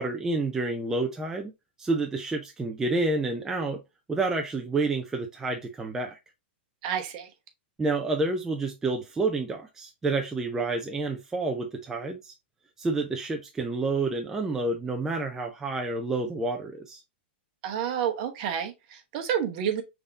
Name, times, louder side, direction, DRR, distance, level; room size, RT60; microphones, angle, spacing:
voice 1, 0.0-1.5 1.8-3.8 4.1-6.2 7.8-12.3 12.8-17.0, right 3 dB, 10° right, 0.4 m, -29 dB
voice 2, 6.8-7.3 17.6-19.8, right 8 dB, 40° right, 1.0 m, -29 dB
5.5 x 3.5 x 2.4 m
hypercardioid pair, 155°, 6 cm